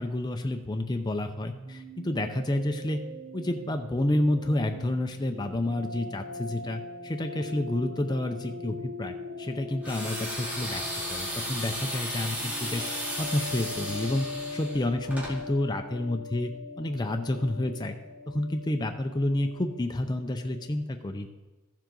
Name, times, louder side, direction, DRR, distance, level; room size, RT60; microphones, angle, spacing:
voice 1, 0.0-3.0 3.3-10.8 11.1-12.9 13.2-14.3 14.5-16.5 16.8-18.0 18.3-21.3, left 1 dB, 20° left, 5 dB, 0.4 m, -29 dB
sound 1, 1.2-20.7, left 2 dB, 75° right, 3.4 m, -41 dB
sound 2, 9.8-15.4, equal, 5° right, 2.2 m, -35 dB
14.0 x 7.4 x 3.8 m, 1.2 s
head